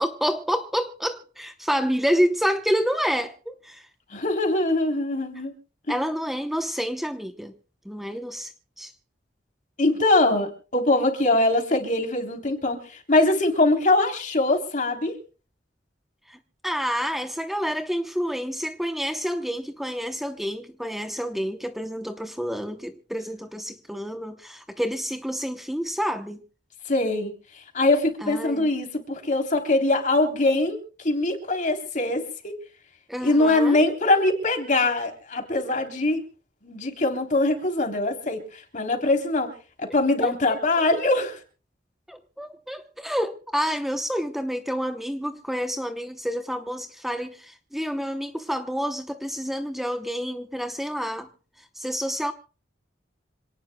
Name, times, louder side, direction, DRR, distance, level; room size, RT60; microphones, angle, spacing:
voice 1, 0.0-3.9 5.9-7.5 7.9-8.5 8.8-8.9 16.3-16.4 16.6-26.4 28.2-28.7 33.1-33.8 40.2-40.6 42.1-51.3 51.8-52.3, equal, ahead, 0.8 m, -28 dB
voice 2, 4.1-5.5 5.9-6.0 9.8-15.2 26.9-27.3 27.7-32.6 33.2-36.2 36.6-39.5 39.8-41.4, left 2 dB, 45° left, 3.3 m, -23 dB
27.0 x 18.5 x 2.2 m
head